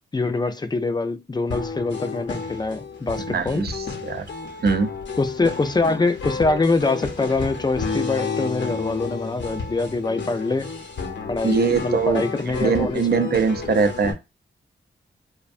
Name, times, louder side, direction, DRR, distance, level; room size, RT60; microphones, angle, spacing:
voice 1, 0.1-3.7 5.2-10.7 11.3-13.3, left 3 dB, 20° left, 0.5 m, -24 dB
sound 1, 1.5-14.1, left 4 dB, 65° left, 0.8 m, -31 dB
voice 2, 3.3-4.2 4.6-4.9 11.4-14.2, right 5 dB, 50° right, 0.5 m, -22 dB
2.5 x 2.1 x 2.5 m
cardioid pair, 45°, 20 cm